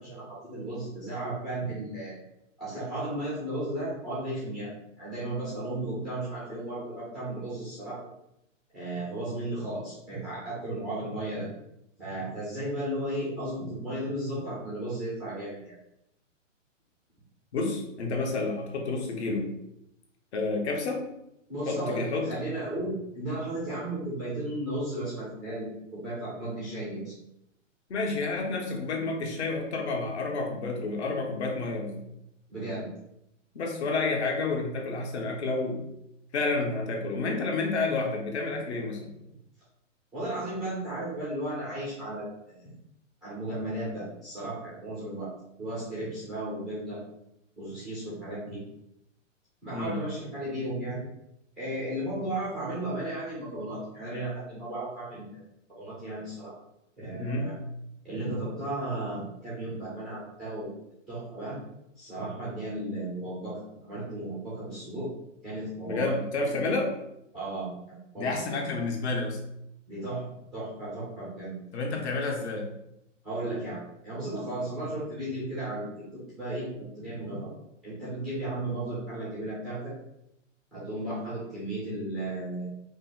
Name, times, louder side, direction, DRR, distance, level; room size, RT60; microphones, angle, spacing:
voice 1, 0.0-2.2 2.6-8.0 8.7-11.5 12.0-15.7 21.5-27.1 32.5-32.9 40.1-42.6 43.2-45.3 45.6-47.0 47.6-48.6 49.6-51.0 51.6-55.4 55.7-56.5 57.0-57.5 58.0-60.7 61.1-61.6 62.0-65.1 65.4-66.1 67.3-68.6 69.9-71.6 73.2-75.9 76.3-77.5 77.8-79.9 80.7-82.7, right 1 dB, ahead, -9 dB, 0.4 m, -34 dB
voice 2, 17.5-19.5 20.3-21.0 21.7-22.3 27.9-32.1 33.5-35.8 36.3-39.1 49.7-50.0 57.2-57.5 65.9-66.9 68.2-69.4 71.7-72.7, left 3 dB, 60° left, 1 dB, 1.2 m, -30 dB
5.2 x 2.1 x 3.8 m, 0.81 s
hypercardioid pair, 145°, 38 cm